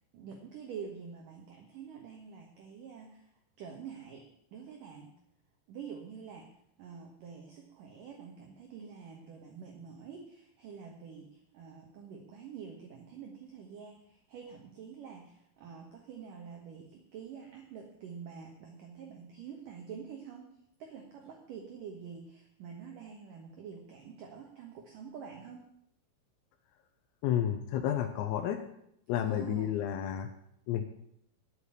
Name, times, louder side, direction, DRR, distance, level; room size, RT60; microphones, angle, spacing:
voice 1, 0.1-3.3 3.6-5.1 5.7-6.5 6.8-20.5 20.8-25.7 29.2-29.8, right 6 dB, 65° right, 1 dB, 2.1 m, -47 dB
voice 2, 27.2-28.6 29.1-30.3 30.7-30.8, left 10 dB, 85° left, 4 dB, 3.7 m, -31 dB
13.0 x 6.4 x 9.9 m, 0.74 s
omnidirectional pair, 6.0 m